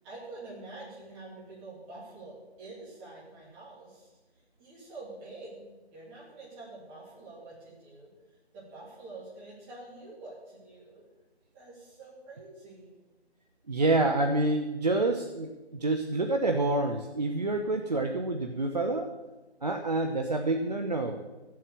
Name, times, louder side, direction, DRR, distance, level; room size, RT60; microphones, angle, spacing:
voice 1, 0.0-4.1 4.6-11.0 11.5-12.9, right 2 dB, 10° right, -8 dB, 2.7 m, -47 dB
voice 2, 13.7-19.1 19.6-21.2, right 2 dB, 40° right, 4 dB, 0.7 m, -28 dB
13.0 x 7.7 x 6.8 m, 1.1 s
figure-of-eight pair, 160°, 33 cm